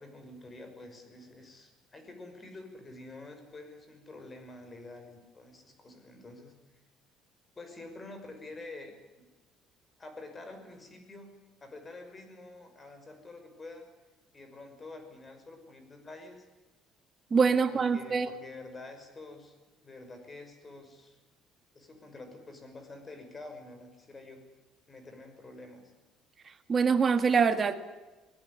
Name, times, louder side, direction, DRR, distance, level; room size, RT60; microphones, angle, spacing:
voice 1, 0.0-6.5 7.6-9.3 10.0-11.3 11.6-13.9 14.3-16.5 17.3-21.2 21.7-24.4 24.9-25.9, left 2 dB, 20° left, 7 dB, 6.0 m, -48 dB
voice 2, 17.3-18.3 26.5-27.7, right 5 dB, 30° right, 8 dB, 2.1 m, -25 dB
24.5 x 18.5 x 9.8 m, 1.2 s
cardioid pair, 125°, 0 cm